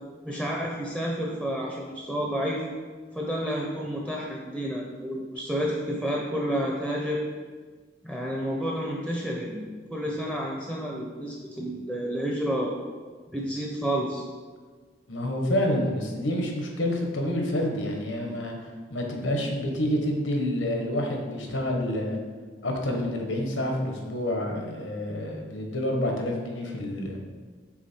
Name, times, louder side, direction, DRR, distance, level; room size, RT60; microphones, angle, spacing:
voice 1, 0.2-2.6 3.1-7.2 8.0-12.7 13.3-14.2, equal, 5° right, -2 dB, 0.6 m, -30 dB
voice 2, 15.1-22.2 22.6-27.2, left 1 dB, 85° left, 1 dB, 1.1 m, -28 dB
6.2 x 4.0 x 4.4 m, 1.5 s
head